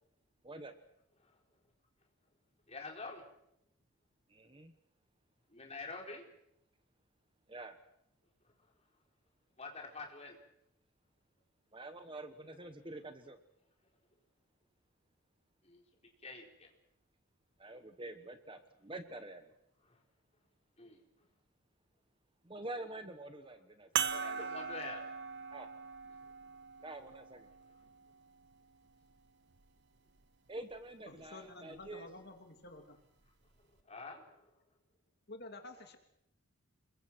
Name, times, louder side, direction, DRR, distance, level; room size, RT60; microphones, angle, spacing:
voice 1, 0.4-0.8 4.3-4.7 7.5-7.8 11.7-13.4 17.6-19.5 22.4-24.4 25.5-25.7 26.8-27.5 30.5-32.1 35.8-35.9, right 2 dB, 25° right, 8 dB, 1.2 m, -47 dB
voice 2, 2.7-3.3 5.5-6.2 9.6-10.4 15.6-15.8 16.2-16.7 19.9-20.0 20.8-21.0 24.1-25.1 33.8-34.5, left 3 dB, 30° left, 1 dB, 4.4 m, -46 dB
sound 1, 24.0-28.8 29.5-29.6 31.8-31.9, right 7 dB, 50° right, 1.1 m, -40 dB
voice 3, 31.1-33.0 35.3-36.0, left 2 dB, 45° left, 5 dB, 2.8 m, -50 dB
28.5 x 22.0 x 6.1 m, 0.78 s
head